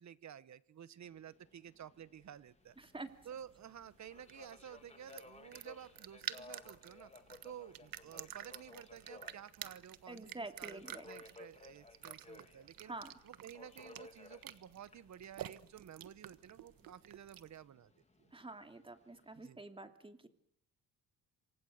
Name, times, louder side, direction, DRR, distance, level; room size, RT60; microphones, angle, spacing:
voice 1, 0.0-2.7 3.2-7.1 7.4-12.9 13.2-18.3 19.4-19.6, right 9 dB, 50° right, 16 dB, 1.2 m, -53 dB
Subway metro underground, 1.0-19.5, left 3 dB, 20° left, 2.8 m, -59 dB
voice 2, 2.8-3.1 10.1-11.1 12.8-13.1 18.3-20.3, right 2 dB, 15° right, 7 dB, 2.7 m, -48 dB
sound 1, 2.8-17.6, right 11 dB, 70° right, 1.4 m, -51 dB
28.5 x 24.5 x 6.7 m, 0.71 s
cardioid pair, 125°, 36 cm